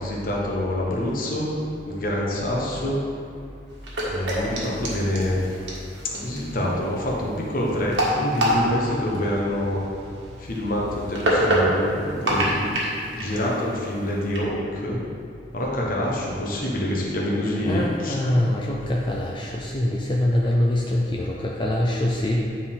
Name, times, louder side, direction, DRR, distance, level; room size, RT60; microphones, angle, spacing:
voice 1, 0.0-1.5 1.9-3.0 4.1-5.6 6.0-9.8 10.4-12.8 13.1-15.0 15.5-18.2, left 1 dB, 50° left, -3 dB, 1.1 m, -26 dB
sound 1, 3.7-14.4, right 1 dB, 80° right, 1.5 m, -27 dB
voice 2, 17.6-22.4, left 1 dB, 25° left, -3 dB, 0.5 m, -24 dB
9.2 x 4.3 x 3.7 m, 2.3 s
head